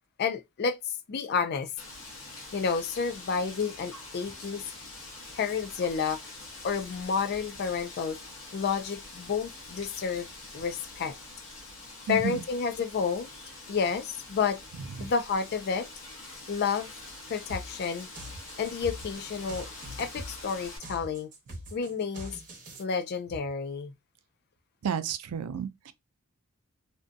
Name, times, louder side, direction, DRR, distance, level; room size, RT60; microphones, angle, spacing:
voice 1, 0.2-1.7 2.5-4.7 5.3-6.2 6.6-8.2 8.5-10.3 10.5-11.1 12.1-13.3 13.7-14.6 15.0-15.9 16.5-16.9 17.3-18.1 18.6-19.7 20.0-21.3 21.7-22.3 22.8-23.9, left 5 dB, 45° left, 0.4 m, -30 dB
Wind, 1.8-20.8, left 2 dB, 60° left, 0.9 m, -45 dB
voice 2, 12.1-12.4 15.0-15.1 24.8-25.9, right 7 dB, 85° right, 0.4 m, -32 dB
sound 1, 17.5-22.8, equal, 40° right, 1.0 m, -43 dB
2.5 x 2.2 x 2.5 m
head